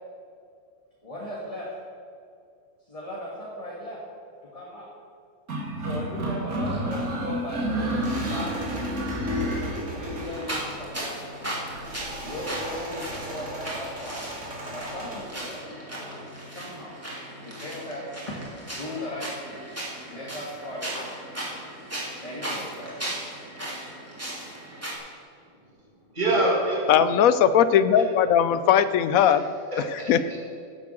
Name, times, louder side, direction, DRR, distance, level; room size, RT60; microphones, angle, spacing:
voice 1, 1.0-1.6 2.9-4.0 4.5-4.9 5.8-8.5 9.9-11.5 12.2-14.3 14.7-16.9 17.4-19.6 20.1-21.1 22.2-23.0, left 1 dB, 25° left, -5 dB, 1.7 m, -37 dB
sound 1, 5.5-10.3, equal, 80° right, 2.2 m, -29 dB
sound 2, 6.9-15.4, right 1 dB, 55° right, 2.6 m, -39 dB
sound 3, 10.2-25.0, right 1 dB, 10° right, 2.6 m, -37 dB
voice 2, 26.1-26.8 27.9-28.1 29.2-29.4 29.7-30.4, right 2 dB, 35° right, -3 dB, 2.6 m, -26 dB
voice 3, 26.9-29.4 30.1-30.4, left 9 dB, 75° left, 14 dB, 1.0 m, -19 dB
10.5 x 7.2 x 7.7 m, 2.3 s
omnidirectional pair, 1.5 m